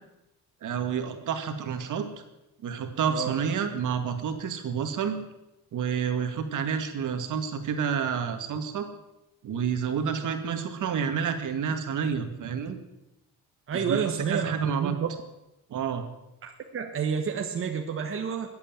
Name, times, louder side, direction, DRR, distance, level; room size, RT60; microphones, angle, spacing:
voice 1, 0.6-2.1 2.6-5.2 5.7-8.9 9.4-12.8 13.7-14.9 15.7-16.1, right 7 dB, 60° right, 7 dB, 2.1 m, -29 dB
voice 2, 13.7-15.1 16.4-18.5, right 7 dB, 40° right, 3 dB, 1.4 m, -30 dB
21.0 x 8.5 x 7.5 m, 0.92 s
cardioid pair, 130°, 35 cm